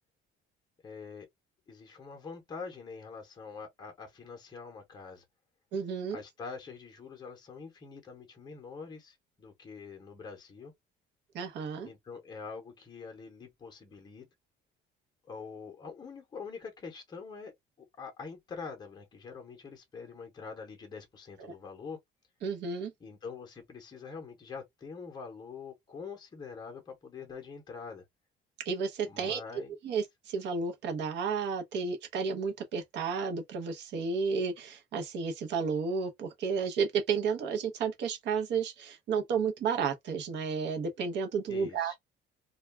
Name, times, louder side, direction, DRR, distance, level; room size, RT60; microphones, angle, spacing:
voice 1, 0.8-1.3 1.7-5.2 6.1-10.7 11.8-14.3 15.3-22.0 23.0-28.0 29.1-29.7 41.5-41.9, left 5 dB, 20° left, 0.7 m, -45 dB
voice 2, 5.7-6.2 11.3-11.9 21.4-21.5 22.4-22.9 28.6-29.4 29.8-42.0, right 5 dB, 60° right, 0.8 m, -32 dB
2.3 x 2.2 x 3.1 m
cardioid pair, 175°, 20 cm